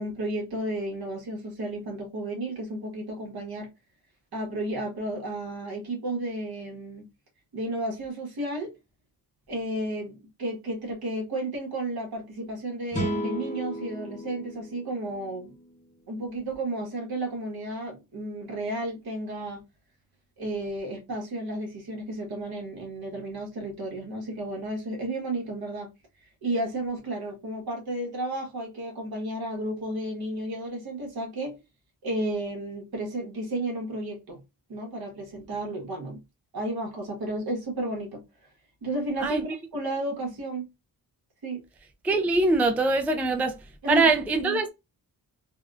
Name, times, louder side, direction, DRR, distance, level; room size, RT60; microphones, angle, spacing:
voice 1, 0.0-3.7 4.3-7.1 7.5-8.7 9.5-15.5 16.1-19.6 20.4-25.9 26.4-31.6 32.0-34.4 34.7-36.2 36.5-38.2 38.8-40.7 41.4-41.6 43.8-44.1 44.4-44.6, right 1 dB, 70° right, 1.4 m, -32 dB
sound 1, 12.9-16.2, right 1 dB, 20° left, 0.8 m, -35 dB
voice 2, 42.0-43.6 43.9-44.7, right 3 dB, 5° right, 0.3 m, -23 dB
3.4 x 2.2 x 2.4 m
wide cardioid pair, 105°, 38 cm